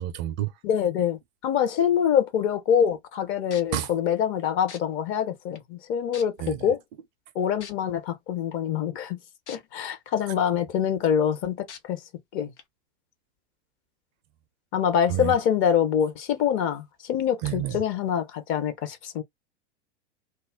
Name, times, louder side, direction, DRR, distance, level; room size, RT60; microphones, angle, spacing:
voice 1, 0.0-0.5 3.7-3.9 6.4-6.7 15.1-15.4 17.4-17.8, right 12 dB, 40° right, 0.4 m, -29 dB
voice 2, 0.6-6.8 7.4-9.2 9.5-12.0 12.3-12.5 14.7-19.2, left 8 dB, 35° left, 0.7 m, -25 dB
sound 1, 3.5-3.8 4.7-4.8 5.6-5.7 6.1-6.5 7.6-7.7 9.5-9.6 10.1-10.2 11.7-11.8 12.6-12.7, left 7 dB, 75° left, 0.8 m, -41 dB
2.4 x 2.1 x 3.3 m
hypercardioid pair, 95°, 35 cm